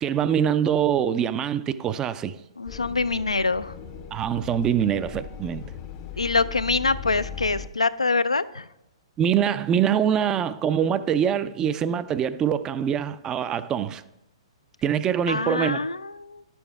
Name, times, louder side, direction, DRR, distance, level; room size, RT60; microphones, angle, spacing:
voice 1, 0.0-2.4 4.1-5.7 9.2-14.0 14.8-15.9, right 8 dB, 20° right, 0.3 m, -24 dB
voice 2, 2.6-3.7 6.2-8.7 15.3-16.4, left 3 dB, 90° left, 0.3 m, -25 dB
sound 1, 2.7-7.7, left 8 dB, 35° left, 0.5 m, -38 dB
10.0 x 6.9 x 3.5 m
figure-of-eight pair, 120°, 3 cm